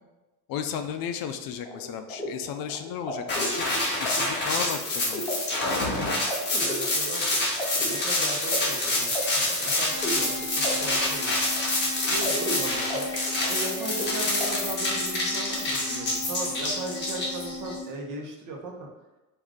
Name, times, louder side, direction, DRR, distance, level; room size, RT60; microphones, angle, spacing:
voice 1, 0.5-3.7 4.0-5.3, left 8 dB, 60° left, 7 dB, 0.5 m, -34 dB
sound 1, 1.6-14.5, equal, 10° left, 0.6 m, -36 dB
sound 2, 3.3-17.7, left 2 dB, 25° left, 1.2 m, -27 dB
voice 2, 6.1-7.2 7.7-11.4 12.1-13.1 13.5-18.7, right 2 dB, 50° right, 0 dB, 0.9 m, -37 dB
sound 3, 9.9-17.8, left 2 dB, 25° right, 0.9 m, -39 dB
4.9 x 2.6 x 3.6 m, 1.1 s
cardioid pair, 150°, 40 cm